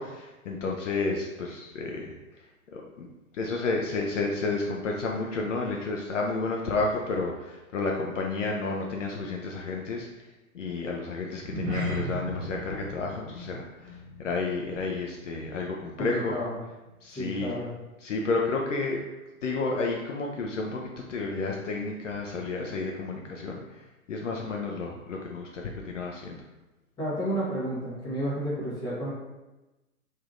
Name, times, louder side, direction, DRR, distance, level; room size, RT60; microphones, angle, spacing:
voice 1, 0.0-2.2 2.7-3.1 3.3-10.1 10.5-16.4 17.0-17.5 18.0-19.0 19.4-23.8 24.1-26.4, left 3 dB, 60° left, 0 dB, 0.5 m, -31 dB
sound 1, 11.3-16.0 16.2-16.5 17.0-17.1, equal, 50° right, 1.1 m, -36 dB
voice 2, 16.0-16.5 17.1-17.7 27.0-29.1, right 1 dB, 10° left, -8 dB, 0.8 m, -31 dB
3.4 x 2.6 x 2.4 m, 1.1 s
figure-of-eight pair, 110°, 44 cm